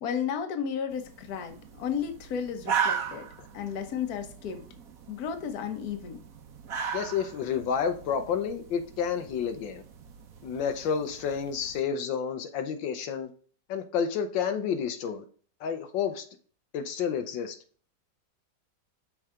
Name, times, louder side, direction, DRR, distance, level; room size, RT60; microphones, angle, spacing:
voice 1, 0.0-3.3 3.5-4.6 5.1-6.2, left 7 dB, 60° left, 7 dB, 1.4 m, -33 dB
sound 1, 0.9-11.8, right 7 dB, 55° right, 1.2 m, -37 dB
voice 2, 6.9-9.8 10.4-13.3 13.7-15.2 15.6-16.2 16.7-17.5, left 7 dB, 85° left, 7 dB, 1.5 m, -30 dB
6.4 x 4.7 x 3.6 m, 0.43 s
omnidirectional pair, 2.0 m